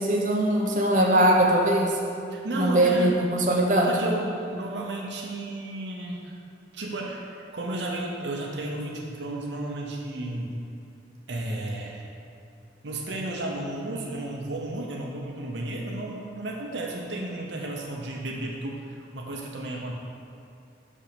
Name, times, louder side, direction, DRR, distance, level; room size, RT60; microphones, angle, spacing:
voice 1, 0.0-2.0 2.5-4.0, right 1 dB, 45° right, -2 dB, 1.1 m, -21 dB
voice 2, 2.3-3.2 3.8-6.4 6.7-10.6 11.3-12.1 12.8-19.9, right 1 dB, 75° right, -1 dB, 0.9 m, -33 dB
6.4 x 5.3 x 6.9 m, 2.5 s
head